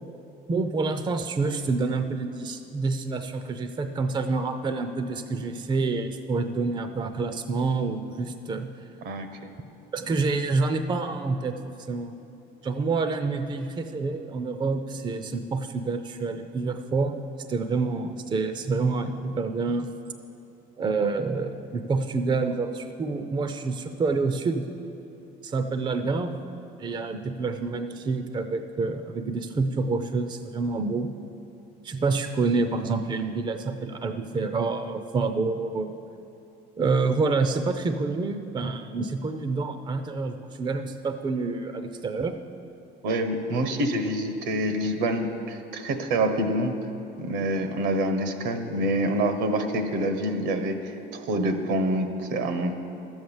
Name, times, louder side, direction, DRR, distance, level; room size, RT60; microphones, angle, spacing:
voice 1, 0.5-8.7 9.9-11.5 11.9-12.1 12.6-17.2 17.5-19.9 20.8-24.6 25.4-26.4 26.8-31.1 31.8-35.9 36.8-42.3, right 3 dB, 25° right, 8 dB, 0.5 m, -27 dB
voice 2, 43.0-46.8 47.2-52.7, right 1 dB, 75° right, 7 dB, 1.2 m, -26 dB
12.5 x 7.9 x 7.2 m, 2.8 s
cardioid pair, 125°, 19 cm